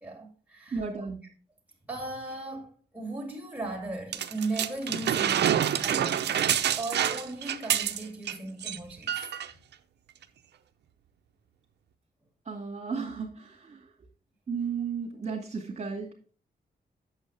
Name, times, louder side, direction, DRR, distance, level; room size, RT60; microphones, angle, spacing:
voice 1, 0.0-1.0 1.9-9.2, right 2 dB, 10° right, 2.6 m, -37 dB
voice 2, 0.7-1.2 12.5-13.9 14.5-16.1, right 5 dB, 40° right, 2.1 m, -34 dB
sound 1, 4.1-8.3 8.6-8.8 9.1-9.5 10.2-10.3, right 9 dB, 90° right, 0.6 m, -27 dB
8.1 x 6.9 x 3.3 m
wide cardioid pair, 125°, 17 cm